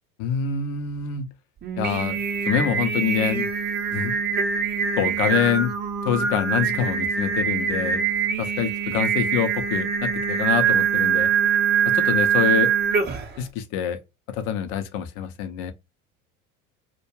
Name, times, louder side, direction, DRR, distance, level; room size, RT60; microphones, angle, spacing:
voice 1, 0.2-1.3 1.8-2.2 2.5-3.5 3.9-4.1 5.0-5.7 6.1-8.0 8.4-11.3 11.9-12.7 13.4-14.0 14.3-15.7, left 8 dB, 50° left, 0.6 m, -25 dB
Singing, 1.6-13.4, right 7 dB, 25° right, 0.7 m, -23 dB
2.2 x 2.1 x 3.0 m
figure-of-eight pair, 75°, 43 cm